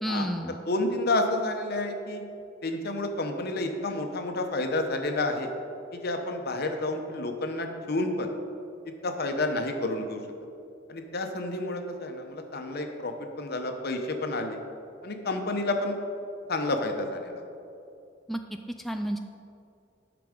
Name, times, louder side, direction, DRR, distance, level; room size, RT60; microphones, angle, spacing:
voice 1, 0.0-0.6 18.3-18.4 18.8-19.2, equal, ahead, 5 dB, 0.3 m, -30 dB
voice 2, 0.7-2.2 2.6-5.5 5.9-8.3 9.0-10.2 10.9-14.6 15.0-16.0 16.5-17.5, left 2 dB, 55° left, 5 dB, 1.0 m, -30 dB
12.0 x 6.0 x 5.1 m, 2.6 s
head